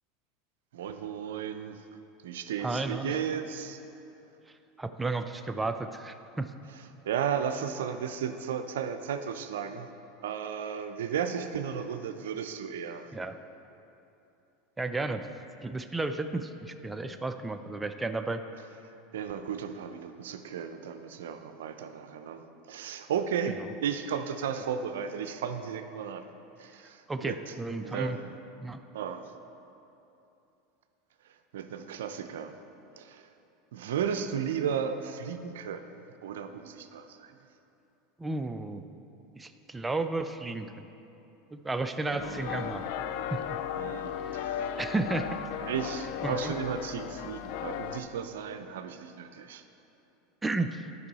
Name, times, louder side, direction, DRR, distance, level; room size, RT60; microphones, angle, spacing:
voice 1, 0.7-1.8 2.2-3.8 7.0-9.9 10.2-13.1 19.1-26.3 26.6-27.5 27.8-28.3 28.9-29.3 31.5-32.6 33.0-33.3 33.7-37.4 42.1-42.8 43.7-44.7 45.6-49.6, right 7 dB, 85° right, 9 dB, 0.4 m, -34 dB
voice 2, 2.6-3.1 4.8-6.5 13.1-13.4 14.8-15.2 15.6-18.4 23.5-23.7 27.1-28.2 28.6-28.8 38.2-38.8 39.4-40.9 41.5-42.8 43.3-43.4 44.8-45.3 46.2-46.6 50.4-50.9, right 3 dB, 10° right, 8 dB, 0.4 m, -33 dB
sound 1, 42.2-48.0, left 9 dB, 65° left, 0.4 m, -35 dB
10.5 x 5.4 x 4.1 m, 2.9 s
supercardioid pair, 105°, 0 cm